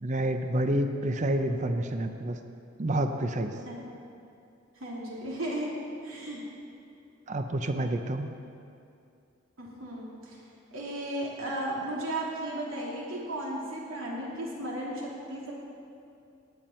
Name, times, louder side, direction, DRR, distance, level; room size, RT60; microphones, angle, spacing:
voice 1, 0.0-2.4 2.8-3.5 7.3-8.3, right 1 dB, 35° right, 7 dB, 0.6 m, -28 dB
voice 2, 3.5-3.8 4.8-5.7 6.0-6.4 9.6-10.4 10.7-15.5, right 1 dB, 85° right, -4 dB, 2.8 m, -35 dB
18.0 x 9.0 x 4.4 m, 2.5 s
head